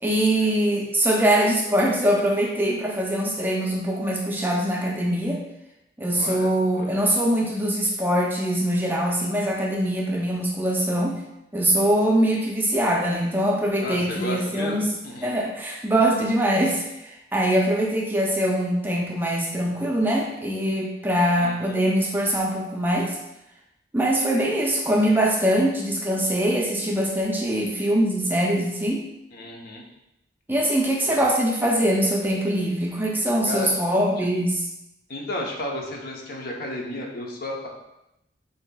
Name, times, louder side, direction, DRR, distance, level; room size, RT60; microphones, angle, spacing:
voice 1, 0.0-5.4 6.0-11.2 11.5-14.9 15.2-23.2 23.9-29.0 30.5-34.7, right 1 dB, 10° right, -1 dB, 0.5 m, -23 dB
voice 2, 6.2-6.9 13.7-15.3 21.3-21.8 29.3-29.8 31.0-31.2 33.4-33.7 34.2-34.3 35.1-37.7, left 1 dB, 55° left, -1 dB, 0.8 m, -33 dB
7.0 x 2.8 x 2.3 m, 0.88 s
head